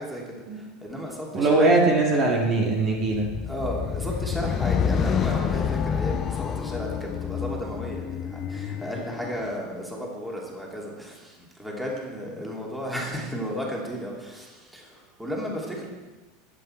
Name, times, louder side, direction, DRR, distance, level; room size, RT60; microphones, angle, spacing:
voice 1, 0.0-1.7 3.4-15.9, equal, 5° right, -2 dB, 2.8 m, -34 dB
voice 2, 1.3-3.4, right 2 dB, 35° right, 0 dB, 2.1 m, -21 dB
sound 1, 3.1-9.5, left 7 dB, 30° left, 0.6 m, -28 dB
22.0 x 8.4 x 4.5 m, 1.2 s
supercardioid pair, 140°, 0 cm